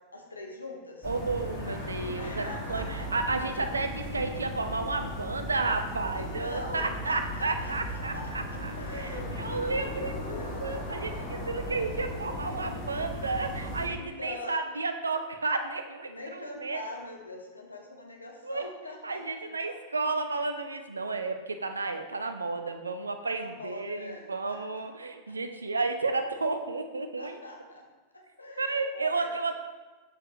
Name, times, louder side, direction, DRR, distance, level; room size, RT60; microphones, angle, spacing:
voice 1, 0.1-1.1 2.2-3.1 6.1-10.8 11.1-11.4 13.9-14.6 16.1-19.7 23.2-24.8 27.2-27.8 28.1-29.3, left 2 dB, 80° left, 1 dB, 1.1 m, -43 dB
sound 1, 1.0-13.9, left 1 dB, 35° left, 2.4 m, -37 dB
voice 2, 1.0-10.1 10.6-16.8 18.4-18.6 19.0-27.4 28.6-29.5, right 3 dB, 75° right, 7 dB, 0.6 m, -32 dB
7.6 x 6.6 x 3.1 m, 1.3 s
figure-of-eight pair, 90°, 0 cm